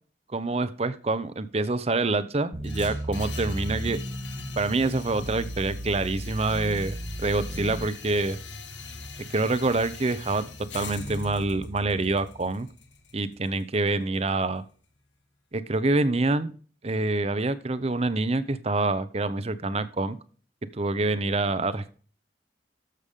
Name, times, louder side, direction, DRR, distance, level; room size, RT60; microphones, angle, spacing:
voice 1, 0.3-4.0 4.6-8.4 9.3-10.5 10.7-12.7 13.1-14.6 15.5-16.5 16.8-20.2 20.8-21.9, right 2 dB, 35° right, 14 dB, 0.7 m, -26 dB
sound 1, 2.5-7.9, right 1 dB, 75° right, 3.0 m, -35 dB
sound 2, 2.6-14.7, left 3 dB, 90° left, 1.7 m, -42 dB
13.0 x 6.9 x 3.7 m, 0.42 s
head